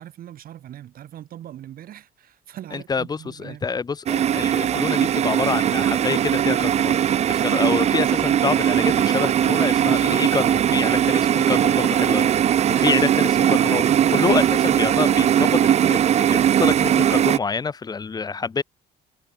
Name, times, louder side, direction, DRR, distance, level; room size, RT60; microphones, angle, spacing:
voice 1, 0.0-3.7 7.5-7.6 12.7-12.9, right 11 dB, 60° right, 2.4 m, -41 dB
voice 2, 2.7-7.0 7.3-13.8 14.1-18.6, left 5 dB, 25° left, 0.7 m, -27 dB
sound 1, 4.1-17.4, right 10 dB, 40° right, 0.5 m, -19 dB
cardioid pair, 110°, 17 cm